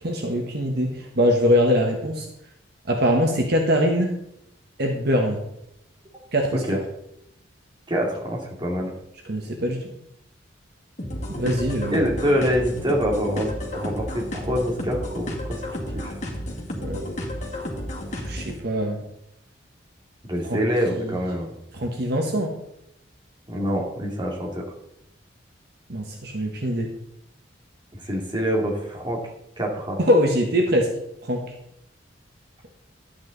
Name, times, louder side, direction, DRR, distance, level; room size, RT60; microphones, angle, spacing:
voice 1, 0.0-2.3 2.9-4.1 4.8-5.4 6.3-6.6 9.2-9.8 11.3-12.1 16.8-17.1 18.1-19.0 20.5-20.6 21.0-21.2 21.7-22.5 25.9-26.9 30.0-30.9 31.2-31.4, equal, 60° right, 2 dB, 1.5 m, -22 dB
voice 2, 7.9-8.9 11.9-15.6 15.9-16.1 20.3-21.5 23.5-24.6 27.9-29.2 29.6-30.0, equal, 25° right, -1 dB, 2.4 m, -25 dB
sound 1, 11.0-18.6, left 1 dB, 40° left, 2.4 m, -32 dB
11.5 x 8.7 x 4.0 m, 0.79 s
head